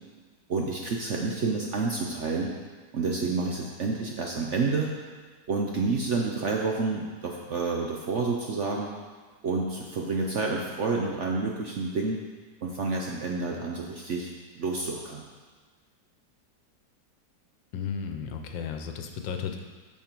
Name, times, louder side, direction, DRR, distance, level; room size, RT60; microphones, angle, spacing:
voice 1, 0.5-2.5 2.9-4.9 5.5-8.9 9.4-12.2 12.6-15.2, right 3 dB, 60° right, 0 dB, 0.8 m, -29 dB
voice 2, 17.7-19.6, left 6 dB, 85° left, 5 dB, 1.5 m, -34 dB
8.8 x 5.9 x 4.5 m, 1.4 s
omnidirectional pair, 1.9 m